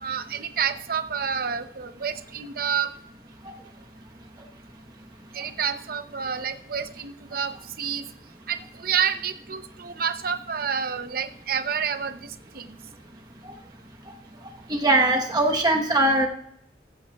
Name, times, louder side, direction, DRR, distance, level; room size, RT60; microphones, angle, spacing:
voice 1, 0.0-2.9 5.3-8.0 8.5-12.2 12.5-12.7, right 7 dB, 55° right, 9 dB, 0.7 m, -29 dB
voice 2, 14.8-16.3, right 2 dB, 25° right, 2 dB, 1.1 m, -20 dB
15.0 x 14.0 x 2.4 m, 0.74 s
head